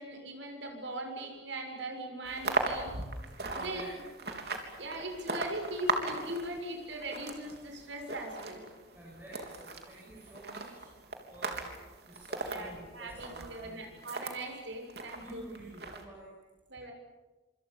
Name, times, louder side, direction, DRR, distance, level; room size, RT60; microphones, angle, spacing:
voice 1, 0.0-3.0 3.5-3.9 4.8-8.7 12.4-15.4 16.7-16.9, right 1 dB, 80° right, 3 dB, 6.9 m, -40 dB
sound 1, 2.2-14.4 14.9-16.0, right 3 dB, 55° right, 3.6 m, -38 dB
voice 2, 3.5-3.9 8.9-10.8 11.3-11.7 12.1-14.1 15.2-16.3, right 1 dB, 10° right, -5 dB, 7.3 m, -50 dB
26.5 x 26.5 x 7.2 m, 1.2 s
head